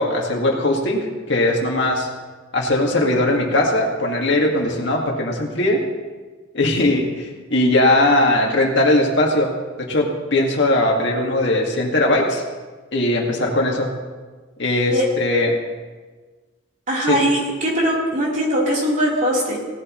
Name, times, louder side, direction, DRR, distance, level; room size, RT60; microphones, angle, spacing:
voice 1, 0.0-2.1 2.5-5.8 6.5-9.5 9.9-12.4 12.9-13.9 14.6-15.5 17.1-17.2, left 1 dB, 60° left, 0 dB, 2.0 m, -19 dB
voice 2, 16.9-19.6, right 1 dB, 40° right, -5 dB, 3.7 m, -20 dB
18.0 x 12.5 x 3.1 m, 1.4 s
head